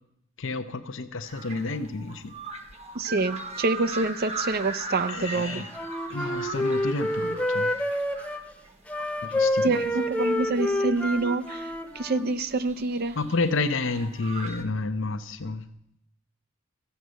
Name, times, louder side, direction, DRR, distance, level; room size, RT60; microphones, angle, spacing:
voice 1, 0.4-2.3 5.1-5.7 6.1-7.7 9.2-9.8 13.2-15.6, left 3 dB, 65° left, 0.7 m, -30 dB
sound 1, 1.2-14.6, right 3 dB, 30° right, 1.0 m, -39 dB
voice 2, 3.0-5.6 9.6-13.2, right 3 dB, 45° right, 0.5 m, -27 dB
Wind instrument woodwind instrument, 5.5-8.4 8.9-12.3, left 1 dB, 5° left, 0.9 m, -28 dB
14.0 x 8.0 x 6.4 m
head